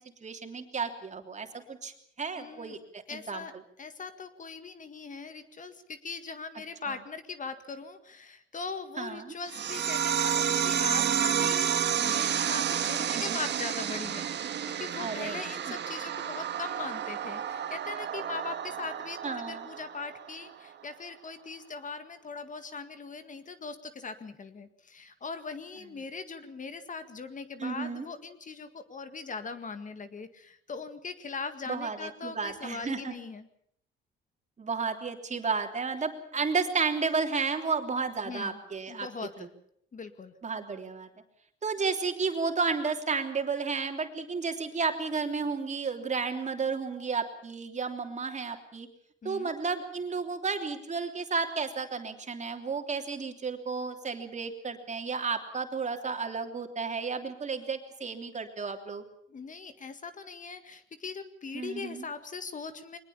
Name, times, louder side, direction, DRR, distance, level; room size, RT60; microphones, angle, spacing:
voice 1, 0.2-1.9 2.2-3.4 6.8-7.0 9.0-9.3 13.1-13.4 15.0-15.7 19.2-19.7 27.6-28.1 31.7-33.1 34.6-39.1 40.4-41.1 41.6-48.9 49.2-59.0 61.5-62.1, right 5 dB, 35° right, 4 dB, 3.2 m, -32 dB
voice 2, 2.3-2.8 3.1-3.5 3.8-33.5 38.2-38.6 38.9-39.5 39.9-40.3 49.2-49.5 59.3-63.0, left 4 dB, 40° left, 10 dB, 1.8 m, -40 dB
sound 1, 9.5-20.5, right 9 dB, 60° right, 1.6 m, -30 dB
22.0 x 20.0 x 7.2 m, 0.67 s
cardioid pair, 90°, 20 cm